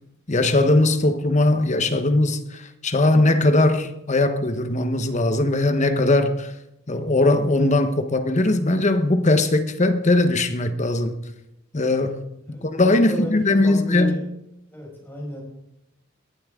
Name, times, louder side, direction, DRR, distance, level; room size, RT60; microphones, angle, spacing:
voice 1, 0.3-6.5 6.9-11.1 11.7-12.2 12.5-14.2, left 2 dB, 35° left, 1.1 m, -20 dB
voice 2, 13.0-14.2 14.7-15.4, equal, 10° left, 5.9 m, -32 dB
21.0 x 12.0 x 3.7 m
head